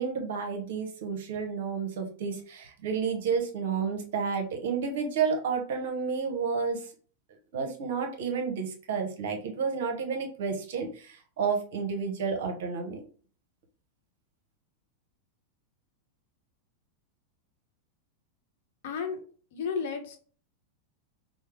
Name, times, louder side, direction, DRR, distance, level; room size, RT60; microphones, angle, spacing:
voice 1, 0.0-6.8 7.5-13.0, right 5 dB, 55° right, 4 dB, 0.8 m, -31 dB
voice 2, 18.8-19.2 19.5-20.2, left 6 dB, 55° left, 3 dB, 0.8 m, -32 dB
4.5 x 2.0 x 3.0 m, 0.42 s
figure-of-eight pair, 90°, 0 cm